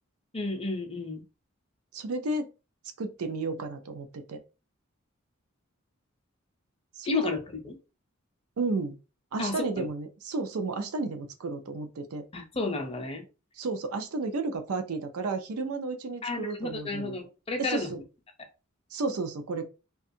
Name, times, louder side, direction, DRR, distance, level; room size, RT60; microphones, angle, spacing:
voice 1, 0.3-1.2 7.0-7.7 9.4-9.9 12.3-13.2 16.2-17.9, left 3 dB, 25° left, 0.6 m, -32 dB
voice 2, 1.9-2.5 3.0-4.4 7.0-7.3 8.6-9.0 9.3-12.3 13.6-17.2 17.6-18.0 18.9-19.7, right 3 dB, 85° right, 0.5 m, -32 dB
2.5 x 2.3 x 2.6 m
head